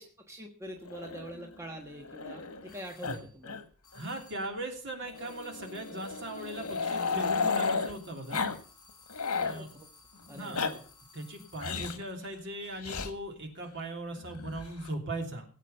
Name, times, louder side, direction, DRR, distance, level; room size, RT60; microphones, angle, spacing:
voice 1, 0.0-3.7 9.6-9.9 10.3-10.9, equal, 15° right, 2 dB, 1.4 m, -45 dB
Growling, 0.8-2.7 3.0-3.2 3.4-3.6 3.9-4.0 5.0-7.9 8.3-8.6 8.9-9.6 10.3-10.7 11.6-12.0 12.8-13.1 14.2-14.9, left 5 dB, 75° left, 1.5 m, -33 dB
sound 1, 2.7-3.4 3.8-4.6 5.1-12.0, left 4 dB, 20° left, 3.2 m, -58 dB
voice 2, 3.9-8.4 9.4-9.7 10.3-10.6 11.1-15.4, right 1 dB, 55° right, 3 dB, 3.1 m, -39 dB
17.5 x 8.4 x 5.6 m, 0.40 s
head